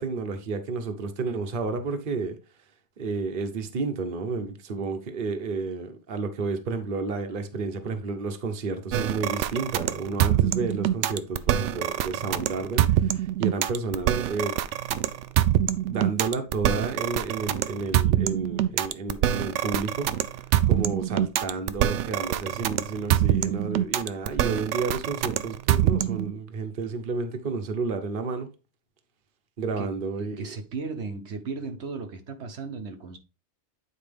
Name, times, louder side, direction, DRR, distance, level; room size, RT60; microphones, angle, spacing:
voice 1, 0.0-2.4 3.0-14.6 15.9-20.4 20.7-28.5 29.6-30.5, right 4 dB, 50° right, 1.1 m, -31 dB
sound 1, 8.9-26.3, right 12 dB, 90° right, 0.9 m, -25 dB
voice 2, 30.2-33.2, right 4 dB, 75° right, 1.2 m, -36 dB
8.9 x 4.5 x 3.4 m
omnidirectional pair, 1.2 m